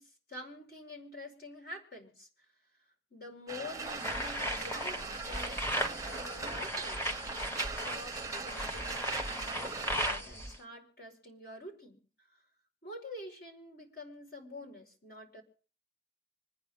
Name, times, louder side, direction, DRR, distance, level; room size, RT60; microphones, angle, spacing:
voice 1, 0.0-2.3 3.1-12.4 12.8-15.4, left 2 dB, 60° left, 1 dB, 5.3 m, -48 dB
sound 1, 3.5-10.1, right 4 dB, 20° right, 0.7 m, -41 dB
sound 2, 3.8-10.6, equal, 15° left, 1.2 m, -36 dB
26.5 x 9.8 x 3.7 m, 0.40 s
head